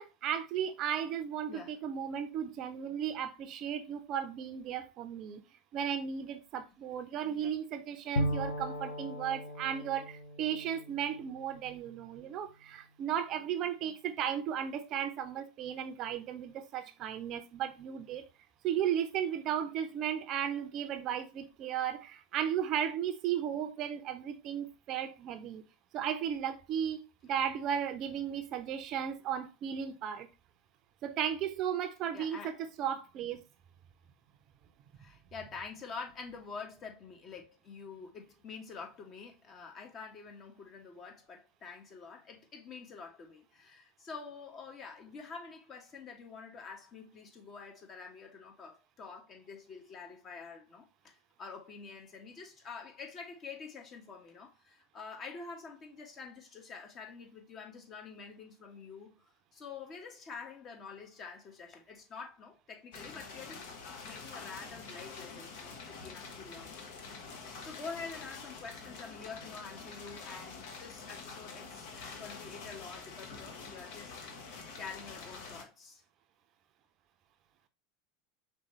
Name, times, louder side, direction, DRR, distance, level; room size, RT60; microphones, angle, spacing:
voice 1, 0.0-5.4 5.7-18.3 18.6-25.6 25.9-30.3 31.0-32.5 32.8-33.4, right 9 dB, 45° right, 0.6 m, -35 dB
voice 2, 1.5-1.8 7.2-7.5 32.1-32.5 35.0-59.1 59.5-66.7 67.6-74.1 74.7-76.0, left 5 dB, 35° left, 1.3 m, -47 dB
Bowed string instrument, 8.2-11.9, equal, 75° left, 0.7 m, -37 dB
sound 1, 62.9-75.6, left 4 dB, 60° left, 1.0 m, -46 dB
5.1 x 3.4 x 3.0 m
figure-of-eight pair, 80°, 0 cm